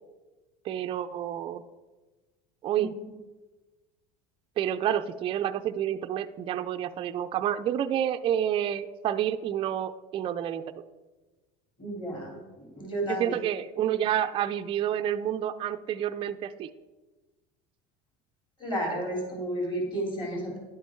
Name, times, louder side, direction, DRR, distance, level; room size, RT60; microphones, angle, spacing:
voice 1, 0.6-1.6 2.6-2.9 4.6-10.6 13.0-16.7, right 10 dB, 25° right, 8 dB, 0.4 m, -29 dB
voice 2, 11.8-13.4 18.6-20.6, right 1 dB, 25° left, -1 dB, 3.5 m, -32 dB
11.0 x 8.3 x 4.5 m, 1.2 s
cardioid pair, 145°, 20 cm